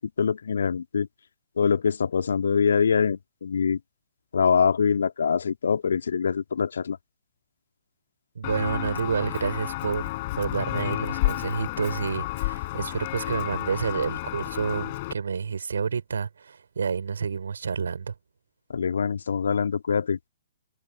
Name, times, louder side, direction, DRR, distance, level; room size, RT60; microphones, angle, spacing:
voice 1, 0.2-1.1 1.6-3.8 4.3-7.0 18.7-20.3, left 6 dB, 65° left, 1.9 m, -24 dB
voice 2, 8.3-10.1 10.4-18.1, right 6 dB, 65° right, 5.1 m, -29 dB
Walk footsteps, 8.4-15.1, left 19 dB, 40° left, 4.1 m, -31 dB
figure-of-eight pair, 120°, 0 cm